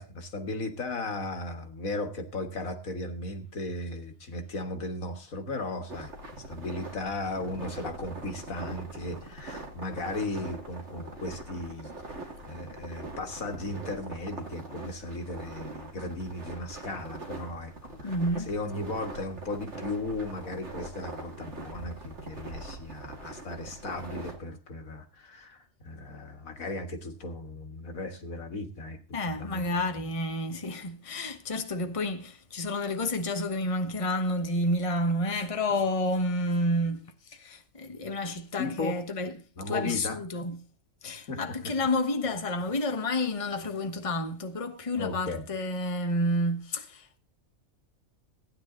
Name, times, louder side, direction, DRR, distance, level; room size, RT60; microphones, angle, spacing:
voice 1, 0.0-6.1 6.5-18.2 18.5-29.7 30.0-30.1 38.6-39.0 39.6-40.2 41.3-41.4 45.0-45.5, left 2 dB, 85° left, 2.1 m, -36 dB
sound 1, 5.9-24.4, right 2 dB, 55° right, 2.6 m, -42 dB
voice 2, 18.0-18.5 29.1-39.4 39.7-40.6 41.0-47.2, left 1 dB, 25° left, 1.2 m, -30 dB
16.0 x 9.9 x 3.8 m
omnidirectional pair, 1.4 m